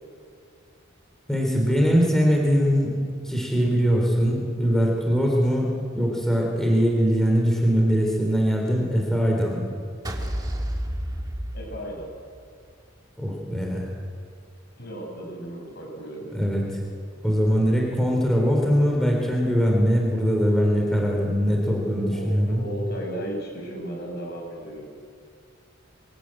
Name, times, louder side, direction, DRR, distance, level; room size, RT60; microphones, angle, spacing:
voice 1, 1.3-2.9 3.2-9.7 13.2-13.9 16.3-16.7 17.2-22.6, equal, ahead, -1 dB, 3.4 m, -22 dB
sound 1, 10.0-12.4, equal, 20° right, 2.2 m, -30 dB
voice 2, 11.5-12.1 14.8-16.4 22.1-24.9, right 1 dB, 55° left, 1 dB, 6.1 m, -35 dB
23.0 x 19.5 x 8.8 m, 2.3 s
head